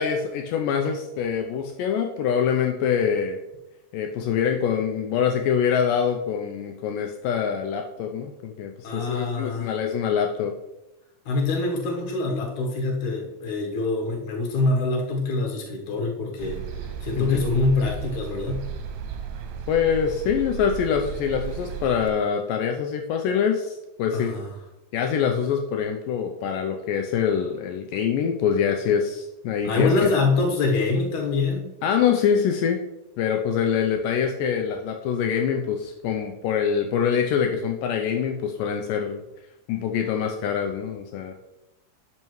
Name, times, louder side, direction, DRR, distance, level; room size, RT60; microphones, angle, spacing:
voice 1, 0.0-3.4 3.9-10.5 17.2-17.4 19.7-24.3 24.9-29.9 31.8-32.8 33.2-39.2 39.7-41.3, left 7 dB, 80° left, 3 dB, 2.0 m, -24 dB
voice 2, 8.8-9.8 11.3-16.6 17.0-18.6 24.1-24.5 29.6-31.6, left 3 dB, 65° left, 0 dB, 2.4 m, -25 dB
sound 1, 16.4-22.1, right 7 dB, 85° right, 2.7 m, -34 dB
11.0 x 5.5 x 3.1 m, 0.96 s
omnidirectional pair, 4.3 m